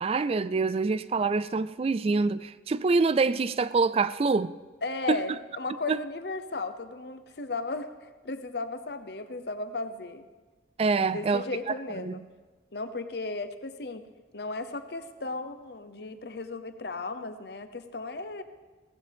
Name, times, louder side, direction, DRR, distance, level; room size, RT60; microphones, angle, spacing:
voice 1, 0.0-4.5 5.1-5.2 5.9-6.0 10.8-11.4 12.0-12.2, right 4 dB, 35° right, 0.3 m, -25 dB
voice 2, 4.8-10.2 11.0-12.2 12.7-14.0 14.3-18.4, left 3 dB, 65° left, 0.8 m, -35 dB
17.0 x 15.0 x 3.5 m
head